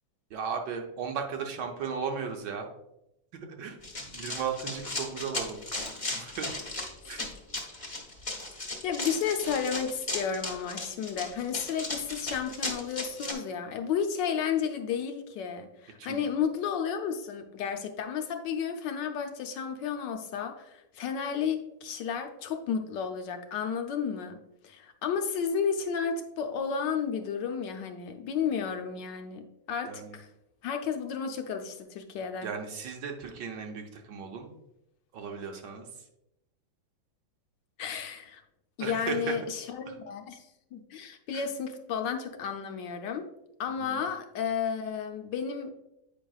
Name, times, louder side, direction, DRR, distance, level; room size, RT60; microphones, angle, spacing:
voice 1, 0.3-2.7 3.3-5.6 6.1-6.5 7.1-7.3 16.0-16.2 29.8-30.2 32.4-34.6 35.1-35.9 38.8-39.4 39.9-40.0 41.3-41.4 43.9-44.0, right 6 dB, 70° right, 3 dB, 1.3 m, -36 dB
Run, 3.8-13.3, left 2 dB, 25° left, 0.9 m, -36 dB
voice 2, 8.8-24.4 24.6-30.3 30.6-32.5 37.8-38.4 38.8-43.2 43.6-45.7, left 7 dB, 75° left, 5 dB, 1.2 m, -32 dB
8.8 x 5.1 x 2.3 m, 0.84 s
omnidirectional pair, 2.1 m